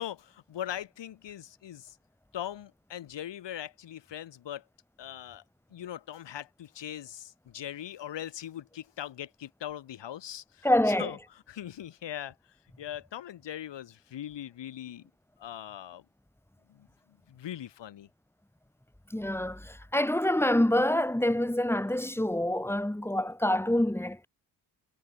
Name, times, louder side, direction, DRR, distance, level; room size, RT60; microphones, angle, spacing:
voice 1, 0.0-2.0 2.3-4.6 5.0-5.4 5.7-11.2 11.5-12.3 12.8-15.1 15.4-16.0 16.7-16.9 17.3-18.1, left 11 dB, 75° left, 4.6 m, -40 dB
voice 2, 10.6-11.1 19.1-24.3, left 1 dB, 5° left, 3.3 m, -26 dB
cardioid pair, 115°, 44 cm